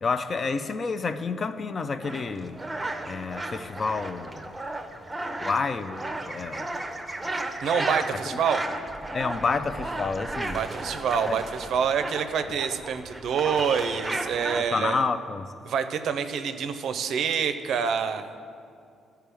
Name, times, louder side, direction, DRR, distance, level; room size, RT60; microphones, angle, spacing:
voice 1, 0.0-2.6 3.0-4.4 5.4-6.7 8.1-8.4 9.1-10.6 11.2-11.4 14.5-15.5, left 4 dB, 40° left, 11 dB, 0.4 m, -29 dB
sound 1, 2.0-14.6, right 2 dB, 20° right, 0.6 m, -34 dB
voice 2, 7.6-8.6 10.5-15.1 15.7-18.3, right 7 dB, 70° right, 9 dB, 0.5 m, -27 dB
13.0 x 4.6 x 3.4 m, 2.4 s
cardioid pair, 90°, 0 cm